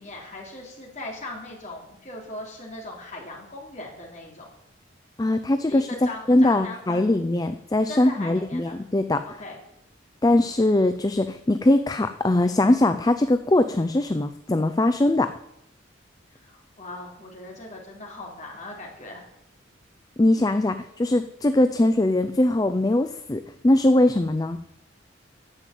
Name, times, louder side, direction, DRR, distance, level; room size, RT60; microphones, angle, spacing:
voice 1, 0.0-4.5 5.7-7.0 7.9-8.7 9.4-9.6 16.4-19.2, left 2 dB, 35° left, -1 dB, 3.3 m, -39 dB
voice 2, 5.2-5.9 6.3-9.2 10.2-15.3 20.2-24.6, left 1 dB, 20° left, 9 dB, 0.4 m, -21 dB
9.9 x 7.5 x 9.2 m, 0.80 s
head